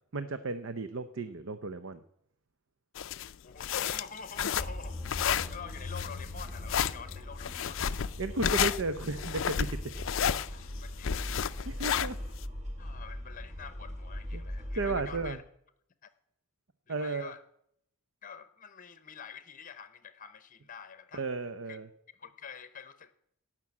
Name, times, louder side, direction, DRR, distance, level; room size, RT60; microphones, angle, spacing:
voice 1, 0.1-2.0 8.2-9.9 11.7-12.2 14.3-14.4 14.7-15.4 16.9-17.3 21.1-21.9, right 3 dB, 60° right, 11 dB, 0.6 m, -34 dB
sound 1, 2.9-12.4, left 8 dB, 60° left, 0.4 m, -31 dB
voice 2, 3.4-5.0 5.5-7.9 10.5-11.4 12.8-15.4 16.0-16.1 16.9-17.4 18.2-21.2 21.7-21.8 22.1-23.1, left 6 dB, 35° left, 13 dB, 0.8 m, -47 dB
sound 2, 4.6-15.3, left 1 dB, 30° right, 2.0 m, -40 dB
17.0 x 6.1 x 8.5 m, 0.73 s
head